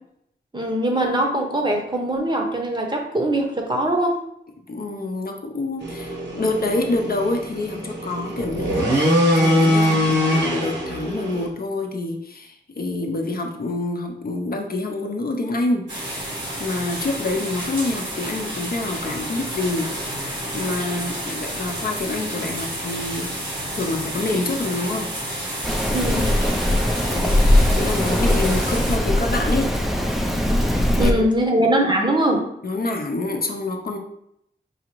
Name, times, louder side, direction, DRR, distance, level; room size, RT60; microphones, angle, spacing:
voice 1, 0.5-4.2 25.9-26.3 31.0-32.4, right 1 dB, 25° right, 1 dB, 0.7 m, -21 dB
voice 2, 4.7-15.9 16.6-19.9 20.5-23.3 23.7-25.1 27.1-29.7 30.7-31.2 31.6-31.7 32.6-34.0, left 2 dB, 55° left, 2 dB, 0.6 m, -27 dB
sound 1, 5.8-11.5, equal, 70° right, 1.0 m, -22 dB
sound 2, 15.9-29.0, right 1 dB, 85° right, 1.3 m, -30 dB
Rain, 25.6-31.1, left 1 dB, ahead, 0.4 m, -20 dB
4.8 x 2.5 x 3.0 m, 0.75 s
wide cardioid pair, 95°, 18 cm